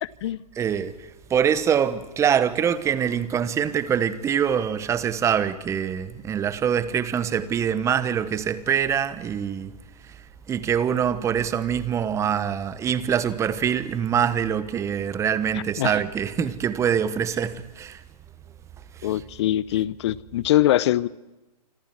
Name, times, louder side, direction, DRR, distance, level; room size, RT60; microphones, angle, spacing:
voice 1, 0.0-0.4 15.8-16.0 19.0-21.1, left 13 dB, 45° left, 0.7 m, -23 dB
voice 2, 0.6-9.7 10.5-18.0 19.0-19.2, right 8 dB, 15° right, 1.1 m, -24 dB
27.5 x 25.5 x 4.7 m
hypercardioid pair, 130°, 20 cm